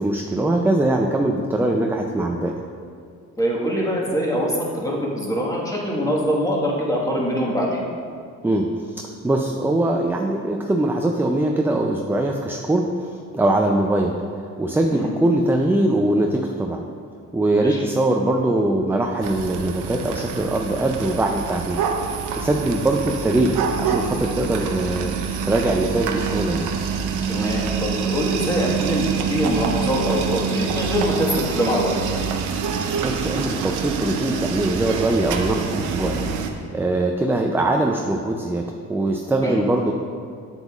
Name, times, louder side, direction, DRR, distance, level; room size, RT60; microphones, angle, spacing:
voice 1, 0.0-2.6 8.4-16.8 17.3-21.8 22.1-25.1 25.4-26.7 33.0-36.2 36.5-39.9, right 1 dB, 5° right, 2 dB, 0.4 m, -22 dB
voice 2, 3.4-7.8 14.9-15.1 17.5-17.8 27.3-32.0 39.4-39.6, equal, 10° left, -4 dB, 1.5 m, -23 dB
sound 1, 19.2-36.5, right 6 dB, 90° right, 0.6 m, -26 dB
7.7 x 7.2 x 2.4 m, 2.2 s
cardioid pair, 90°, 30 cm